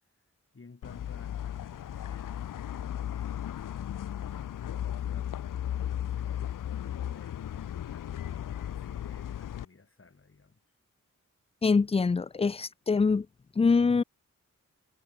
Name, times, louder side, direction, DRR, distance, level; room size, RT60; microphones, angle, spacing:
voice 1, 0.2-10.6, left 4 dB, 40° left, 1.9 m, -55 dB
sound 1, 0.8-9.7, left 10 dB, 85° left, 0.5 m, -35 dB
voice 2, 11.6-13.3 13.6-14.0, left 4 dB, 20° left, 0.3 m, -24 dB
cardioid pair, 60°, 32 cm